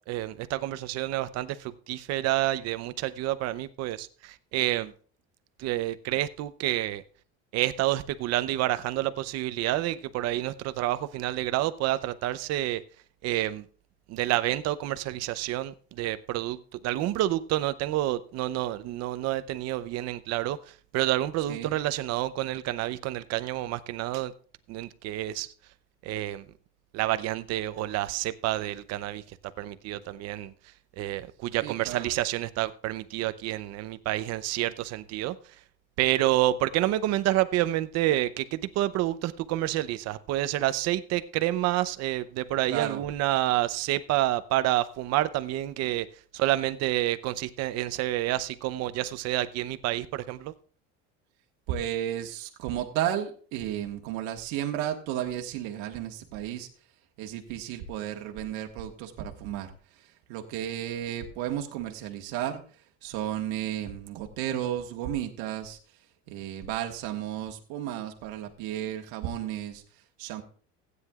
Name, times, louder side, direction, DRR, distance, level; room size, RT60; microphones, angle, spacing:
voice 1, 0.1-4.9 5.6-7.0 7.5-12.8 13.2-13.6 14.1-16.6 16.8-20.6 20.9-24.3 24.7-25.5 26.0-26.4 26.9-29.2 29.6-30.5 31.0-35.4 36.0-46.1 46.3-50.5, right 15 dB, 60° right, 0.7 m, -28 dB
voice 2, 21.4-21.8 31.6-32.1 42.6-43.1 51.7-56.7 57.2-62.6 63.0-65.8 66.3-69.8 70.2-70.4, right 11 dB, 85° right, 1.5 m, -33 dB
16.0 x 9.5 x 2.4 m
cardioid pair, 140°, 30 cm